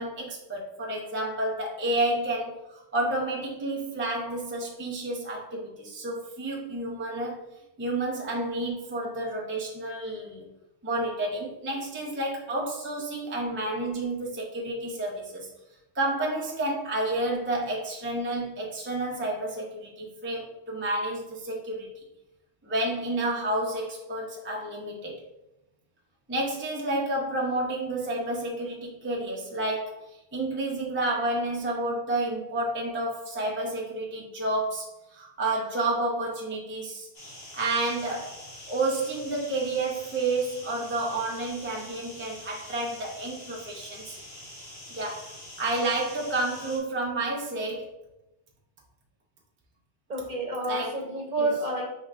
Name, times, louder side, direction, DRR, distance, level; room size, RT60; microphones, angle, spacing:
voice 1, 0.0-7.4 7.8-10.5 10.8-15.5 15.9-21.9 22.6-25.2 26.3-37.1 37.5-44.2 44.9-47.9 50.7-51.0 51.4-51.5, right 2 dB, 15° right, -3 dB, 0.5 m, -30 dB
sound 1, 37.1-46.8, left 1 dB, 85° left, 1.9 m, -45 dB
voice 2, 50.1-51.8, right 1 dB, 40° right, -1 dB, 0.9 m, -29 dB
5.7 x 3.0 x 2.5 m, 0.90 s
omnidirectional pair, 1.3 m